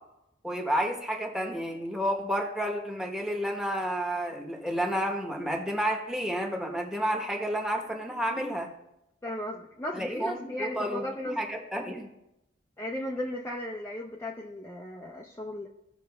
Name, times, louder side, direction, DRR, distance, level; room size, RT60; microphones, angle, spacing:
voice 1, 0.4-8.7 9.9-12.1, equal, 5° right, 1 dB, 1.1 m, -31 dB
voice 2, 9.2-11.4 12.8-15.7, left 1 dB, 15° left, -2 dB, 0.6 m, -36 dB
16.5 x 6.0 x 2.4 m, 0.88 s
head